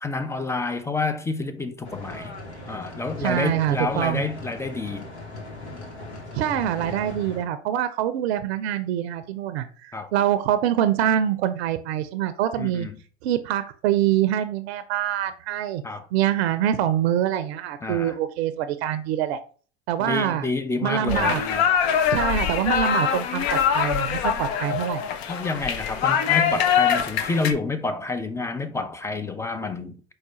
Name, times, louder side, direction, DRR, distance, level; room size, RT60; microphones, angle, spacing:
voice 1, 0.0-2.4 2.7-5.0 9.9-10.1 12.6-13.0 15.8-16.1 17.8-18.2 20.0-21.7 25.3-30.0, left 3 dB, 10° left, 0.3 m, -29 dB
tank engine, 1.8-7.4, left 2 dB, 85° left, 1.0 m, -38 dB
voice 2, 3.2-4.2 6.3-12.9 13.2-15.8 16.1-19.4 19.9-20.5 20.8-21.4 22.1-25.0, right 11 dB, 70° right, 0.5 m, -25 dB
sound 1, 21.1-27.5, left 8 dB, 65° left, 0.6 m, -23 dB
4.7 x 2.2 x 4.2 m
hypercardioid pair, 75°, 33 cm